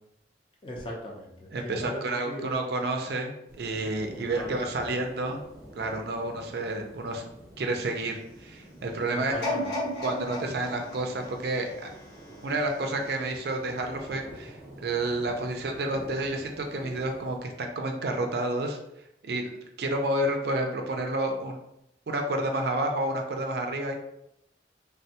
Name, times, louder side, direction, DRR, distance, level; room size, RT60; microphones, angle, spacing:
voice 1, 0.6-2.6 4.1-4.5 9.1-9.7, equal, 30° left, -2 dB, 0.6 m, -38 dB
voice 2, 1.5-5.4 5.8-7.2 7.6-9.3 10.0-11.7 12.4-18.8 19.2-19.5 19.8-21.6 22.1-23.9, right 2 dB, 55° right, 3 dB, 0.4 m, -30 dB
sound 1, 3.5-17.4, right 1 dB, 15° right, 0.7 m, -47 dB
sound 2, 9.4-12.5 13.0-13.1, left 1 dB, 70° left, 1.2 m, -34 dB
3.4 x 2.2 x 2.7 m, 0.80 s
head